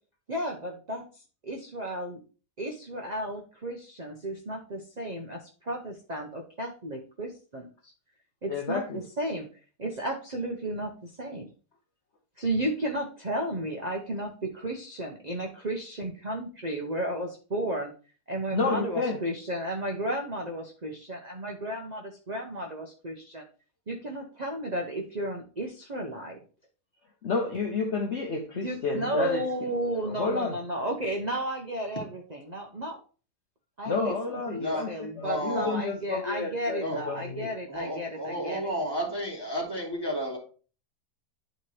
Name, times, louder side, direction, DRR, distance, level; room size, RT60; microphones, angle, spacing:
voice 1, 0.3-2.1 2.6-7.9 8.4-9.5 9.8-11.5 12.4-17.9 18.3-23.4 23.9-26.4 28.5-33.0 33.8-34.1 34.5-38.6, right 1 dB, 35° right, 2 dB, 0.8 m, -33 dB
voice 2, 8.5-9.0 18.5-19.2 27.2-29.4 30.0-30.5 33.9-37.5, left 4 dB, 55° left, 3 dB, 1.0 m, -30 dB
voice 3, 35.2-35.7 36.8-37.0 37.7-40.4, equal, 15° left, -3 dB, 2.4 m, -31 dB
10.0 x 4.4 x 3.3 m, 0.38 s
omnidirectional pair, 1.7 m